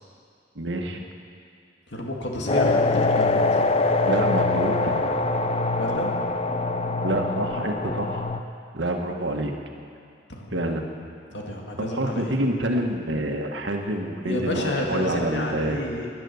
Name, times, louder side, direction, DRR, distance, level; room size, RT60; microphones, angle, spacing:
voice 1, 0.5-1.0 4.0-5.1 7.0-8.3 8.7-9.5 10.5-10.8 11.9-15.8, right 1 dB, 85° right, 3 dB, 1.5 m, -27 dB
voice 2, 1.9-3.4 5.8-6.1 10.3-10.6 11.3-12.4 14.2-16.1, left 1 dB, 75° left, 0 dB, 2.2 m, -30 dB
sound 1, 2.5-8.4, left 3 dB, 35° left, 0.6 m, -23 dB
17.5 x 10.5 x 7.1 m, 2.3 s
head